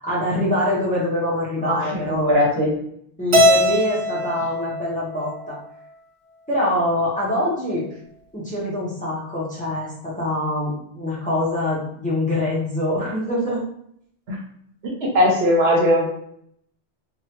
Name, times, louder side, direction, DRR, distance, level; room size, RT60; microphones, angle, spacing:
voice 1, 0.0-2.4 3.2-5.6 6.5-7.9 8.3-13.6, left 1 dB, 10° left, -8 dB, 0.8 m, -24 dB
voice 2, 1.6-2.7 14.3-14.4 15.0-16.1, left 1 dB, 70° right, -1 dB, 1.0 m, -19 dB
Keyboard (musical), 3.3-5.7, equal, 50° right, 0.4 m, -20 dB
2.9 x 2.4 x 2.9 m, 0.68 s
omnidirectional pair, 1.1 m